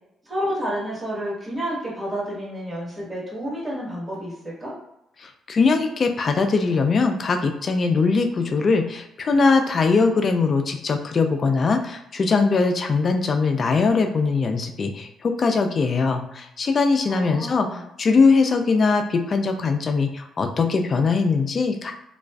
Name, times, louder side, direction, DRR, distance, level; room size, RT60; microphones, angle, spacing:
voice 1, 0.3-4.7 17.1-17.8, equal, 20° right, -6 dB, 1.1 m, -30 dB
voice 2, 5.2-21.9, left 4 dB, 45° left, 6 dB, 0.3 m, -21 dB
2.4 x 2.3 x 2.2 m, 0.83 s
cardioid pair, 90°, 0 cm